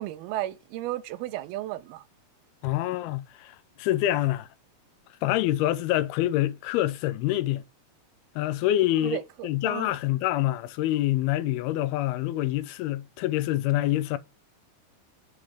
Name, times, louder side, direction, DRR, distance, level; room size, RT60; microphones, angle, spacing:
voice 1, 0.0-2.0 9.0-9.9, right 14 dB, 85° right, 2.4 m, -34 dB
voice 2, 2.6-4.5 5.2-7.6 8.4-14.2, left 14 dB, 85° left, 2.5 m, -26 dB
6.4 x 5.9 x 4.8 m
omnidirectional pair, 4.4 m